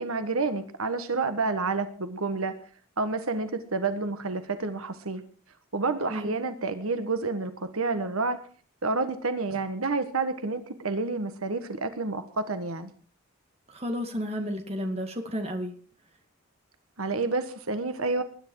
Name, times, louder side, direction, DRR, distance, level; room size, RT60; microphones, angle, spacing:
voice 1, 0.0-2.5 3.0-5.2 5.7-8.4 8.8-12.9 17.0-18.2, right 3 dB, 75° right, 9 dB, 1.4 m, -29 dB
voice 2, 13.7-15.7, equal, 30° right, 4 dB, 2.4 m, -32 dB
20.5 x 10.5 x 4.7 m, 0.43 s
head